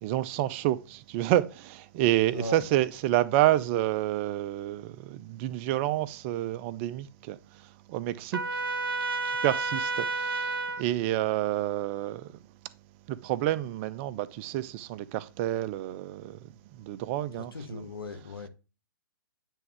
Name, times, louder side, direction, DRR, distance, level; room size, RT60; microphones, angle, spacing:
voice 1, 0.0-8.4 9.2-12.4 13.1-17.9, right 14 dB, 35° right, 0.4 m, -29 dB
voice 2, 2.3-2.6 17.3-18.5, left 2 dB, 90° left, 1.0 m, -37 dB
Trumpet, 8.3-10.8, right 3 dB, 90° right, 0.7 m, -30 dB
9.1 x 3.5 x 3.2 m
hypercardioid pair, 130°, 12 cm